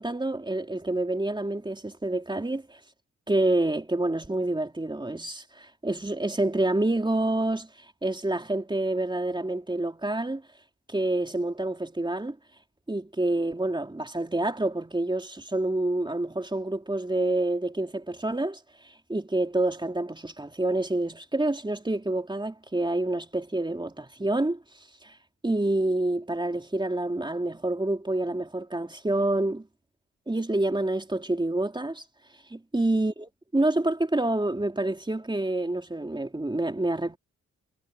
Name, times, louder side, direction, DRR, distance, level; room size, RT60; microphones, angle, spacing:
voice 1, 0.0-2.8 3.3-10.4 10.9-12.4 12.9-24.6 25.0-25.2 25.4-29.7 30.3-32.0 32.5-33.1 33.5-37.2, right 2 dB, 15° right, 3.6 m, -27 dB
cardioid pair, 70°, 30 cm